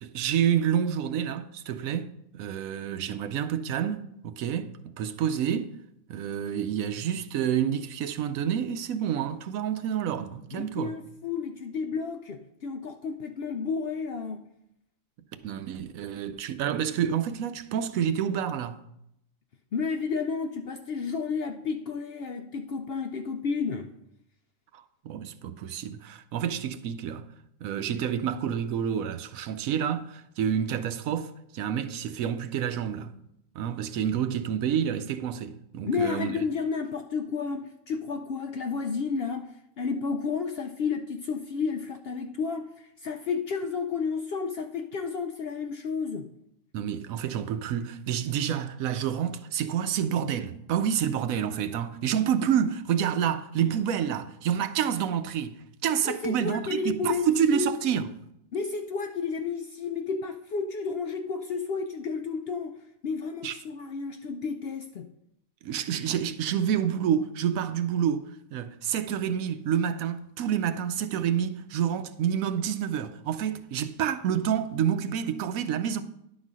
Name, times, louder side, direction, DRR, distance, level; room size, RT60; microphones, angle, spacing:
voice 1, 0.0-5.7 6.1-10.9 15.4-18.8 24.7-27.2 27.6-33.1 33.5-36.3 46.7-55.6 55.8-58.1 63.4-63.6 65.6-68.2 68.5-76.0, right 9 dB, 80° right, 1.0 m, -28 dB
voice 2, 10.5-14.4 19.7-23.9 35.9-39.5 39.8-42.7 43.0-46.3 56.1-57.7 58.5-65.1, left 5 dB, 65° left, 0.6 m, -31 dB
10.5 x 4.1 x 6.1 m
omnidirectional pair, 1.5 m